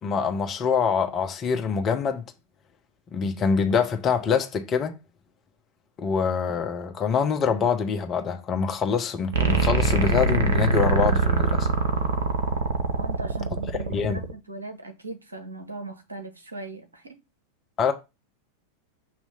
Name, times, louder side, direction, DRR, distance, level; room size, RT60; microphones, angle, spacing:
voice 1, 0.0-2.2 3.1-4.9 6.0-11.7 13.9-14.2 17.8-17.9, left 6 dB, 30° left, 1.0 m, -25 dB
sound 1, 9.3-14.3, right 3 dB, 60° right, 0.9 m, -23 dB
voice 2, 13.0-17.2, right 3 dB, 80° right, 1.2 m, -39 dB
6.7 x 3.1 x 5.5 m
figure-of-eight pair, 90°, 0 cm